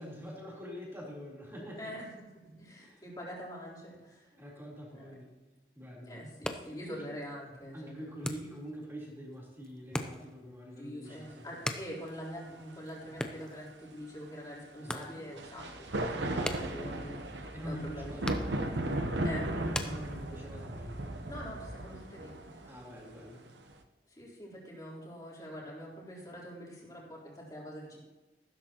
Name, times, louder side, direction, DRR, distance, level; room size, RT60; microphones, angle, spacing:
voice 1, 0.0-1.9 2.8-3.0 4.3-5.3 5.7-6.3 6.8-7.1 7.7-11.5 14.7-15.2 16.3-17.0 17.5-18.6 19.8-21.1 22.6-23.5, equal, 15° right, -5 dB, 3.6 m, -45 dB
voice 2, 1.8-2.1 2.4-4.3 4.9-5.1 5.8-7.9 10.8-18.2 19.2-19.5 21.3-22.6 24.1-28.0, equal, 20° left, -4 dB, 3.7 m, -45 dB
sound 1, 6.2-20.7, left 1 dB, 5° left, 0.6 m, -44 dB
sound 2, 11.5-11.6 15.4-23.7, right 1 dB, 90° right, 1.0 m, -36 dB
sound 3, 15.6-21.8, equal, 40° right, 2.2 m, -48 dB
15.0 x 12.5 x 3.0 m, 1.1 s
head